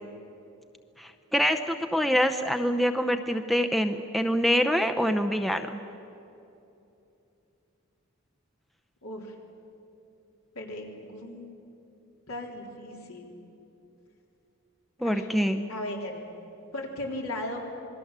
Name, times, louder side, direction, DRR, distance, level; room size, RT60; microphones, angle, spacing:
voice 1, 1.0-5.7 15.0-15.7, equal, ahead, 6 dB, 0.6 m, -25 dB
voice 2, 9.0-9.3 10.6-11.5 12.3-13.3 15.0-15.3 15.7-16.2 16.7-17.6, left 1 dB, 75° left, 1 dB, 3.7 m, -36 dB
27.0 x 21.5 x 7.5 m, 2.8 s
head